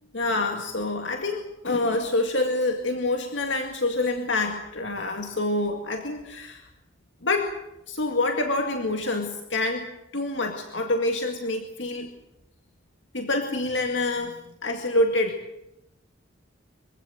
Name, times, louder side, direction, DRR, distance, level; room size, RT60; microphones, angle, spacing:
voice 1, 0.1-6.7 7.2-7.5 7.9-12.1 13.1-15.4, left 2 dB, 70° left, 4 dB, 2.2 m, -27 dB
24.5 x 15.5 x 9.5 m, 0.88 s
head